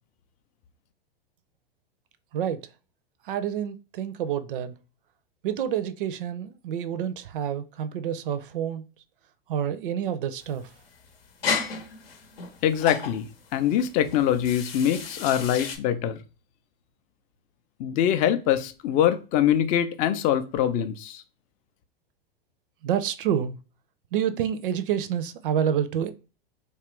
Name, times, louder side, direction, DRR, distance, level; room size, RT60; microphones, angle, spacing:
voice 1, 3.3-4.7 5.4-8.8 9.5-10.7 22.8-23.6 24.1-26.1, right 9 dB, 60° right, 0.4 m, -28 dB
sound 1, 10.4-15.8, left 5 dB, 80° left, 0.8 m, -34 dB
voice 2, 12.6-13.3 13.5-16.2 17.8-21.2, left 10 dB, 25° left, 0.3 m, -23 dB
3.0 x 2.3 x 2.9 m
hypercardioid pair, 105°, 30 cm